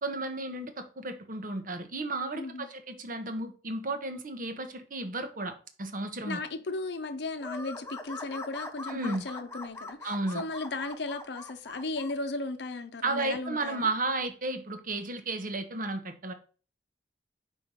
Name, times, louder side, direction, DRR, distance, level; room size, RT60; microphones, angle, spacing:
voice 1, 0.0-6.4 8.9-9.2 10.0-10.4 13.0-16.3, right 2 dB, 50° right, 1.0 m, -33 dB
voice 2, 2.3-2.7 6.3-13.9, left 3 dB, 70° left, 0.7 m, -36 dB
sound 1, 7.4-12.1, left 2 dB, 15° left, 0.7 m, -42 dB
5.2 x 4.6 x 5.3 m
head